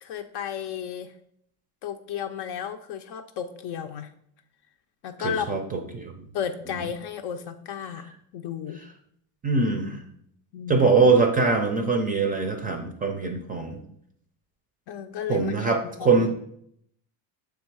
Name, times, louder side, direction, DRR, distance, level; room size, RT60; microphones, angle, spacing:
voice 1, 0.0-1.1 1.8-4.1 5.0-5.6 6.3-8.8 10.5-11.0 14.9-16.3, left 8 dB, 60° left, 7 dB, 0.5 m, -33 dB
voice 2, 5.2-6.3 9.4-10.0 10.7-13.8 15.3-16.3, right 4 dB, 20° right, 4 dB, 0.4 m, -23 dB
6.2 x 3.5 x 4.6 m, 0.70 s
cardioid pair, 130°, 48 cm